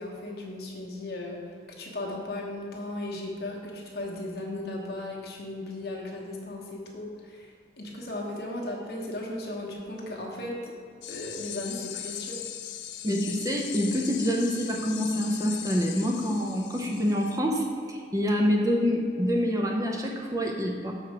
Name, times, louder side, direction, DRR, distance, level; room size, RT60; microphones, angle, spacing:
voice 1, 0.0-1.4 1.8-10.7 11.1-12.4, left 1 dB, 60° left, -2 dB, 1.2 m, -36 dB
sound 1, 11.0-17.4, left 11 dB, 80° left, 0.4 m, -39 dB
voice 2, 13.0-20.9, equal, 20° right, 0 dB, 0.6 m, -26 dB
6.4 x 4.7 x 5.9 m, 2.2 s
head